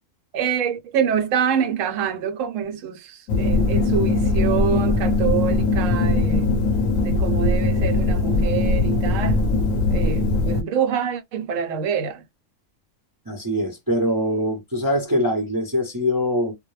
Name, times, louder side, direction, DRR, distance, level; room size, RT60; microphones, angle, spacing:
voice 1, 0.3-6.5 7.0-9.5 9.9-12.2, right 7 dB, 80° right, 1.0 m, -26 dB
sound 1, 3.3-10.6, left 2 dB, 80° left, 1.0 m, -20 dB
voice 2, 13.3-16.5, equal, 25° right, 0.5 m, -23 dB
2.2 x 2.1 x 3.0 m
omnidirectional pair, 1.4 m